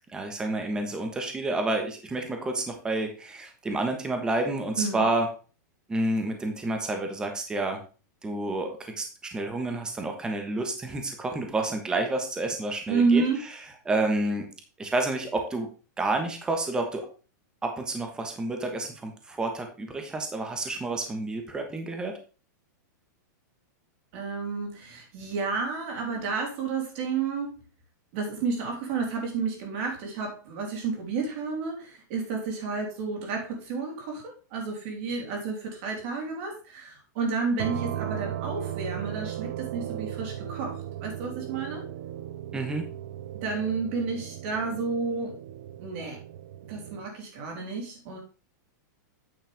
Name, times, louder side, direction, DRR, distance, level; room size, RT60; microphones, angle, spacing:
voice 1, 0.1-5.3 5.9-7.8 8.2-13.2 13.8-14.5 14.8-15.7 16.0-17.1 17.6-22.2 42.5-42.8, right 2 dB, 10° right, 4 dB, 1.2 m, -29 dB
voice 2, 12.9-13.4 24.1-27.5 28.1-41.8 43.4-45.4 45.8-46.2 46.7-48.2, right 4 dB, 40° right, 1 dB, 3.4 m, -31 dB
sound 1, 37.6-47.1, right 11 dB, 60° right, 0.6 m, -36 dB
8.9 x 6.6 x 3.5 m, 0.35 s
supercardioid pair, 170°, 10 cm